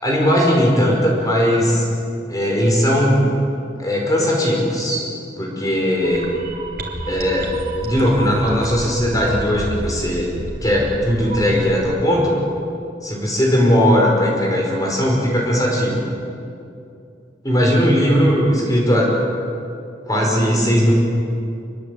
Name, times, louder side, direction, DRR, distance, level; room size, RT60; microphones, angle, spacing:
voice 1, 0.0-1.8 2.3-3.3 3.8-5.1 5.4-6.3 7.1-7.5 7.8-10.3 10.6-12.4 13.0-16.0 17.5-19.1 20.1-20.9, equal, 20° left, -2 dB, 5.4 m, -18 dB
sound 1, 6.0-11.7, right 1 dB, 55° right, 3.7 m, -31 dB
26.0 x 22.0 x 8.5 m, 2.5 s
head